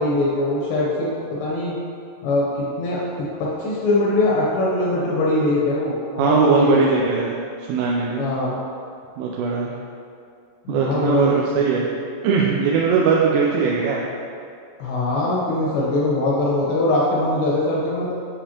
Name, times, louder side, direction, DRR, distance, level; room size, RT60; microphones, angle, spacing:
voice 1, 0.0-1.7 2.2-7.0 8.2-8.6 10.7-11.4 14.8-18.1, left 2 dB, 75° left, -6 dB, 2.6 m, -22 dB
voice 2, 6.2-7.4 7.7-8.2 9.2-9.8 10.7-11.9 12.2-14.0, right 5 dB, 85° right, -3 dB, 3.2 m, -20 dB
10.5 x 5.0 x 2.9 m, 2.4 s
omnidirectional pair, 5.8 m